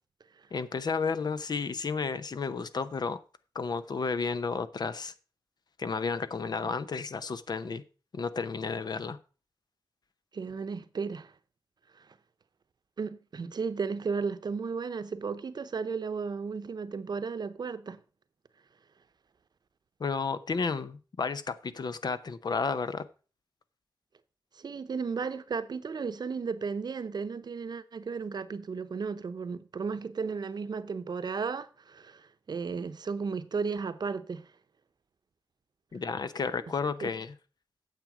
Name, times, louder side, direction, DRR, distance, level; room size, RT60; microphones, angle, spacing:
voice 1, 0.5-3.2 3.5-5.1 5.8-7.8 8.1-9.2 20.0-23.1 35.9-37.3, left 5 dB, 65° left, 0.7 m, -32 dB
voice 2, 10.3-11.3 12.0-12.1 13.0-18.0 24.5-34.5 37.0-37.1, right 5 dB, 65° right, 0.7 m, -34 dB
9.1 x 7.5 x 4.9 m
wide cardioid pair, 100°, 8 cm